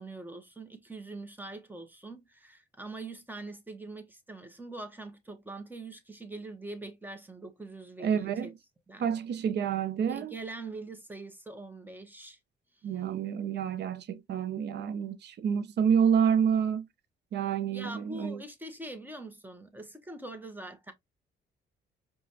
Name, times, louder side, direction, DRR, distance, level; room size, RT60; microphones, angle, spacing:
voice 1, 0.0-8.5 8.9-9.1 10.1-12.4 12.8-12.9 17.7-20.9, right 2 dB, 10° right, 1.0 m, -43 dB
voice 2, 8.0-8.5 9.0-10.3 12.8-16.9 17.3-18.4, right 8 dB, 60° right, 0.6 m, -28 dB
4.9 x 2.3 x 2.7 m
cardioid pair, 90°, 20 cm